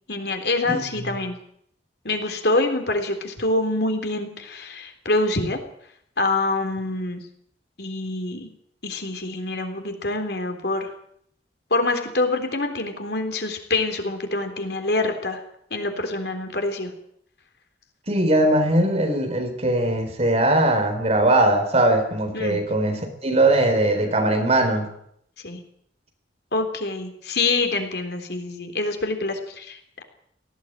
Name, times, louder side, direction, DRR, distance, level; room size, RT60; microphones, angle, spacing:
voice 1, 0.1-1.4 2.1-5.6 6.2-7.2 7.8-8.5 8.8-10.9 11.7-15.4 15.7-16.9 22.3-22.6 25.4-25.6 26.5-30.0, left 2 dB, 65° left, 5 dB, 3.6 m, -25 dB
voice 2, 0.7-1.1 18.1-24.9, right 1 dB, 35° right, 5 dB, 4.0 m, -20 dB
18.5 x 16.0 x 9.0 m, 0.69 s
head